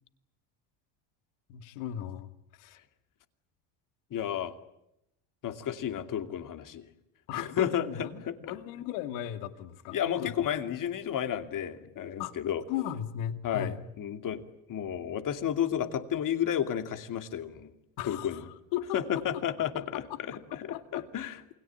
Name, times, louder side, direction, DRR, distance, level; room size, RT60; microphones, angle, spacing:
voice 1, 1.5-2.3 2.6-2.8 7.3-10.5 12.2-12.3 12.7-13.8 18.0-19.4 19.8-20.2 20.5-21.0, left 11 dB, 85° left, 9 dB, 2.4 m, -37 dB
voice 2, 4.1-4.5 5.4-6.8 7.3-8.5 9.9-12.6 13.4-14.4 14.7-17.7 18.0-18.4 18.9-20.0 20.6-21.4, left 9 dB, 45° left, 8 dB, 2.7 m, -32 dB
29.0 x 22.0 x 8.9 m, 0.84 s
cardioid pair, 130°, 45 cm